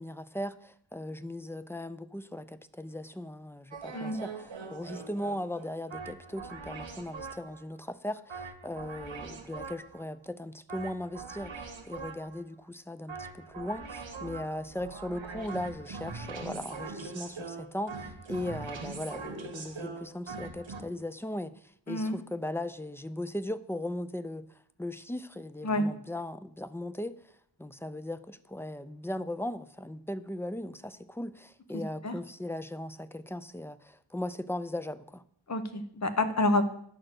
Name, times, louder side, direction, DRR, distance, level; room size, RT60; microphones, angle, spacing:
voice 1, 0.0-27.1 27.6-35.2, left 1 dB, 5° left, 13 dB, 0.4 m, -38 dB
sound 1, 3.7-7.6 8.3-10.0 10.7-12.4 13.1-20.8, right 4 dB, 70° right, 1.6 m, -42 dB
voice 2, 35.5-36.7, left 2 dB, 35° left, 9 dB, 1.0 m, -28 dB
11.0 x 4.5 x 7.7 m, 0.66 s
wide cardioid pair, 110°, 47 cm